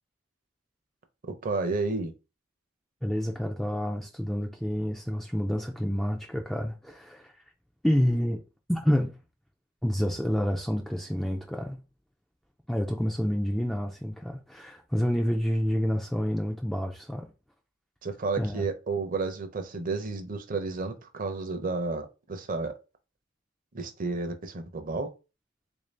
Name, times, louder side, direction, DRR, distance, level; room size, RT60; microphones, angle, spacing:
voice 1, 1.3-2.1 18.0-22.7 23.7-25.1, right 3 dB, 40° right, 0.6 m, -31 dB
voice 2, 3.0-7.3 7.8-8.4 8.7-9.1 9.8-11.8 12.7-17.3 18.4-18.7, equal, ahead, 0.3 m, -28 dB
3.6 x 2.6 x 3.2 m
head